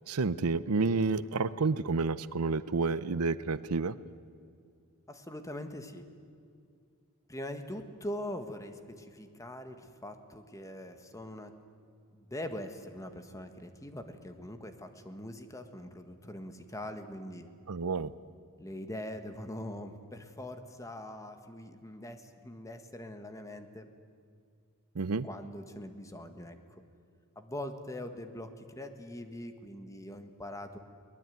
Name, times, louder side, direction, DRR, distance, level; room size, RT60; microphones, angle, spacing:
voice 1, 0.1-4.0 17.7-18.1 25.0-25.3, right 4 dB, 85° right, 16 dB, 0.7 m, -30 dB
voice 2, 5.1-6.1 7.3-11.5 12.1-17.5 18.6-23.9 25.2-26.6 27.3-30.8, left 1 dB, 15° left, 7 dB, 1.6 m, -42 dB
23.0 x 19.5 x 9.4 m, 2.3 s
head